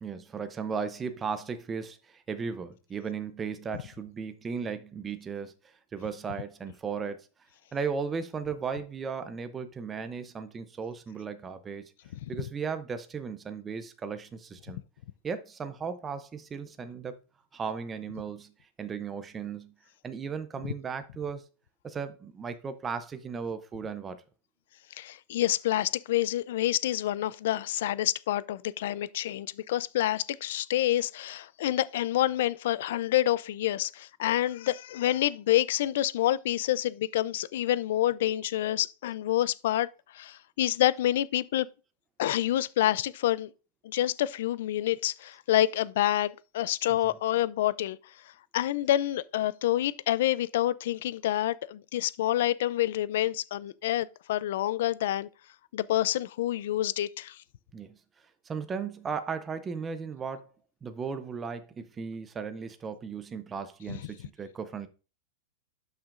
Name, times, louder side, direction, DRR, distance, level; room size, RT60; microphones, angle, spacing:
voice 1, 0.0-5.5 5.9-7.3 7.7-11.9 12.3-14.8 15.2-17.1 17.5-18.5 18.8-19.7 20.0-21.4 21.8-24.2 46.9-47.2 57.7-58.0 58.5-60.5 60.8-64.9, right 6 dB, 15° right, 0.6 m, -36 dB
voice 2, 25.0-39.9 40.1-41.7 42.2-43.5 43.8-48.0 48.5-55.3 55.7-57.4, left 13 dB, 65° left, 0.4 m, -27 dB
12.0 x 5.8 x 2.5 m
supercardioid pair, 160°, 0 cm